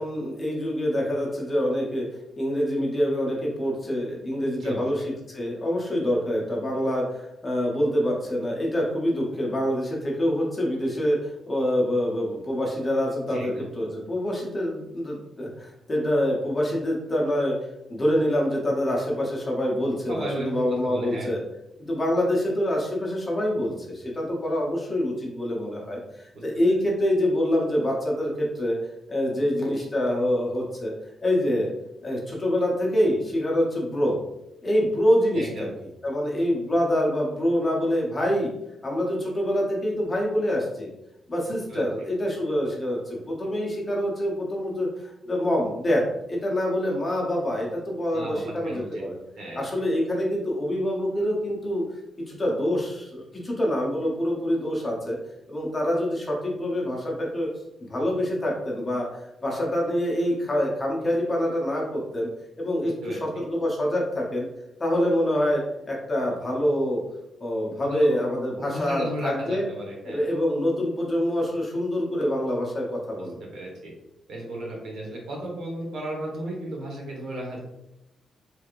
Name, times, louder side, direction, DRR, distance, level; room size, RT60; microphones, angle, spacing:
voice 1, 0.0-2.1 2.4-17.5 17.9-21.4 21.8-28.7 29.1-30.9 31.2-31.7 32.0-34.2 34.6-35.7 36.0-38.5 38.8-40.9 41.3-49.2 49.5-51.8 52.3-55.2 55.5-57.5 57.9-62.3 62.6-64.5 64.8-67.0 67.4-69.6 70.0-73.4, equal, 20° left, -3 dB, 0.8 m, -26 dB
voice 2, 13.3-13.7 20.1-21.3 26.3-26.4 35.3-35.7 41.7-41.8 48.1-49.0 49.4-49.6 63.0-63.2 67.8-68.2 68.6-70.2 73.5-73.9 74.3-77.6, right 1 dB, 65° right, -2 dB, 1.1 m, -34 dB
3.3 x 3.3 x 2.4 m, 0.87 s
wide cardioid pair, 150°, 0 cm